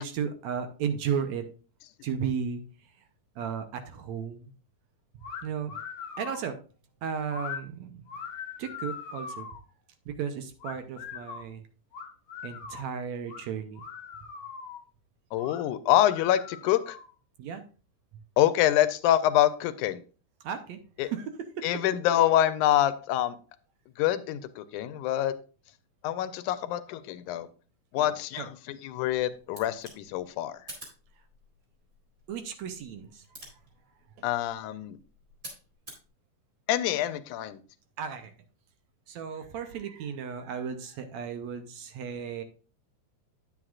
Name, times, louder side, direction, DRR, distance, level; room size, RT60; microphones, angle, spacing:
voice 1, 0.0-1.5 2.0-2.6 3.4-4.5 5.4-5.8 6.2-6.6 7.0-8.2 8.6-9.5 10.1-11.6 12.4-13.8 17.4-17.6 20.4-21.7 28.4-28.5 32.3-33.2 38.0-38.3 39.1-42.4, right 7 dB, 70° right, 8 dB, 1.9 m, -34 dB
sound 1, 5.2-5.4 5.7-6.4 7.3-7.6 8.1-9.6 10.6-11.4 11.9-12.9 13.3-13.4 13.8-14.8 15.4-15.6 16.0-17.1, left 6 dB, 60° left, 1.8 m, -41 dB
voice 2, 15.3-17.0 18.4-20.0 21.0-21.1 21.6-23.4 24.0-25.3 26.0-27.5 27.9-30.6 34.2-35.0 36.7-37.6, left 12 dB, 80° left, 13 dB, 2.0 m, -26 dB
sound 2, 29.0-36.1, right 1 dB, 20° right, 4.0 m, -50 dB
9.5 x 8.7 x 2.4 m, 0.37 s
omnidirectional pair, 3.6 m